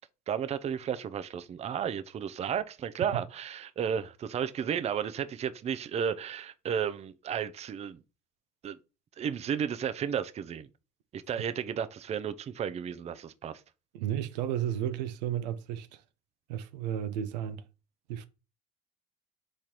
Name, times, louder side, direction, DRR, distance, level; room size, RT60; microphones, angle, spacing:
voice 1, 0.3-8.0 8.6-8.8 9.2-10.7 11.1-13.6, right 8 dB, 30° right, 0.5 m, -33 dB
voice 2, 13.9-16.0 16.5-17.6 18.1-18.3, right 10 dB, 85° right, 0.5 m, -33 dB
3.7 x 3.2 x 4.3 m
hypercardioid pair, 80°, 21 cm